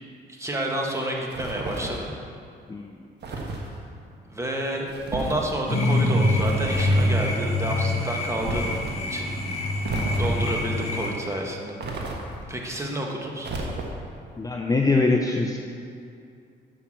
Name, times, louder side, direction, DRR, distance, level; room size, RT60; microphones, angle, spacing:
voice 1, 0.3-2.1 4.3-4.9 5.1-8.7 9.1-9.4 10.1-11.8 12.5-13.5, right 1 dB, 15° right, -1 dB, 1.5 m, -29 dB
sound 1, 1.3-2.1 3.2-3.7 4.9-5.4 6.3-7.2 8.4-8.9 9.8-10.6 11.8-12.5 13.4-14.1, right 2 dB, 60° right, 1.5 m, -32 dB
sound 2, 5.7-11.1, left 1 dB, 35° left, 2.0 m, -25 dB
voice 2, 14.4-15.6, left 3 dB, 15° left, 2 dB, 0.6 m, -23 dB
7.1 x 5.8 x 7.2 m, 2.4 s
cardioid pair, 90°, 20 cm